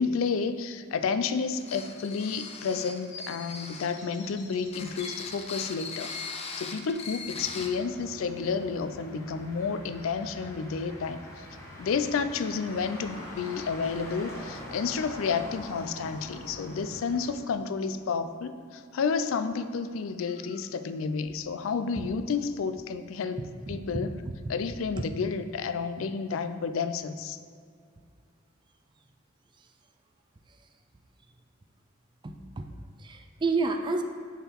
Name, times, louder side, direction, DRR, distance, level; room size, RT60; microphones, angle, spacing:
voice 1, 0.0-6.1 6.5-11.5 11.8-23.4 23.7-24.1 24.5-27.4, left 5 dB, 80° left, 10 dB, 0.4 m, -31 dB
sound 1, 1.2-5.8 6.1-7.2 7.5-10.1, left 2 dB, 60° left, 1.1 m, -50 dB
sound 2, 1.6-4.0 4.7-7.7, left 5 dB, 30° left, 0.5 m, -40 dB
Motor vehicle (road), 7.2-17.3, left 1 dB, 15° left, 1.4 m, -44 dB
voice 2, 23.4-24.4 25.0-25.1 32.2-32.7 33.0-34.0, right 3 dB, 25° right, 6 dB, 0.4 m, -31 dB
6.8 x 3.8 x 4.4 m, 2.2 s
head